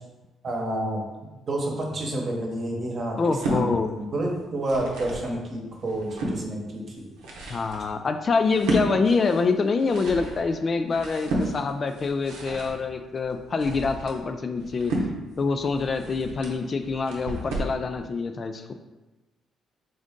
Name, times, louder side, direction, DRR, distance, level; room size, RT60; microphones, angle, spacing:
voice 1, 0.4-1.0 1.5-7.1, right 1 dB, 50° right, 0 dB, 1.0 m, -29 dB
voice 2, 3.2-4.0 7.5-14.9 15.4-18.7, left 4 dB, 45° left, 7 dB, 0.3 m, -25 dB
sound 1, 3.2-3.6 4.4-5.3 5.7-6.4 7.0-17.8, right 1 dB, 85° right, 0.7 m, -32 dB
3.7 x 2.6 x 3.6 m, 1.1 s
supercardioid pair, 60°, 0 cm